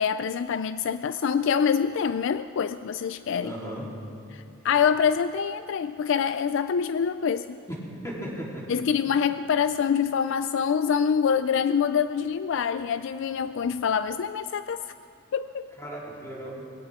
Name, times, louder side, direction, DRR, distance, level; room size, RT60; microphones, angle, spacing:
voice 1, 0.0-3.5 4.3-7.6 8.7-14.8 15.3-15.7, left 7 dB, 65° left, 12 dB, 0.3 m, -25 dB
voice 2, 3.4-3.9 7.7-7.8 8.0-8.7 15.8-16.6, equal, 15° left, -5 dB, 3.6 m, -36 dB
22.5 x 17.0 x 3.7 m, 2.5 s
head